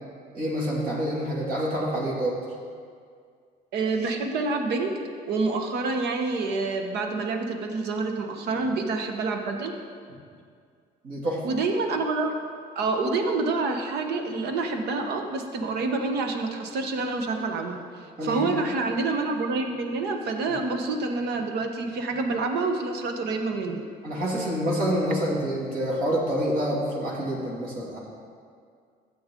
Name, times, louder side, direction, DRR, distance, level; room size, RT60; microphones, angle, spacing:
voice 1, 0.3-2.4 8.5-8.6 11.0-11.4 18.2-18.5 24.0-28.0, equal, 60° right, -5 dB, 2.6 m, -27 dB
voice 2, 3.7-9.7 11.4-12.3 12.7-23.9, right 3 dB, 75° right, 4 dB, 1.1 m, -27 dB
13.0 x 7.9 x 3.8 m, 2.2 s
cardioid pair, 110°, 17 cm